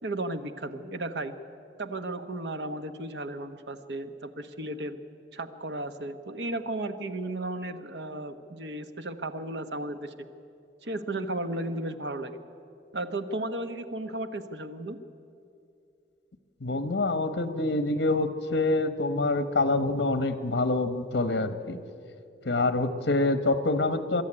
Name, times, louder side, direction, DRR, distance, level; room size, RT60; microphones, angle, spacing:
voice 1, 0.0-1.3 1.8-5.0 5.3-10.3 10.8-12.4 12.9-15.0, right 2 dB, 80° right, 9 dB, 1.2 m, -34 dB
voice 2, 16.6-21.8 22.4-24.2, left 2 dB, 85° left, 11 dB, 1.0 m, -26 dB
23.0 x 13.0 x 9.9 m, 2.6 s
head